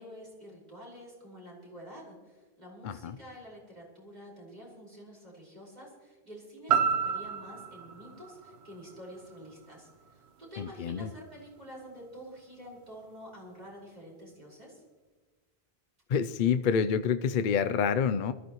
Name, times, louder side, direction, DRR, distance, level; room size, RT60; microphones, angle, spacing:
voice 1, 0.0-14.8, equal, 40° right, -4 dB, 5.2 m, -48 dB
voice 2, 2.8-3.2 10.6-11.1 16.1-18.3, left 7 dB, 55° left, 11 dB, 0.7 m, -27 dB
sound 1, 6.7-10.8 11.2-11.3, right 7 dB, 80° right, 1.1 m, -32 dB
23.0 x 14.0 x 3.1 m, 1.3 s
omnidirectional pair, 1.1 m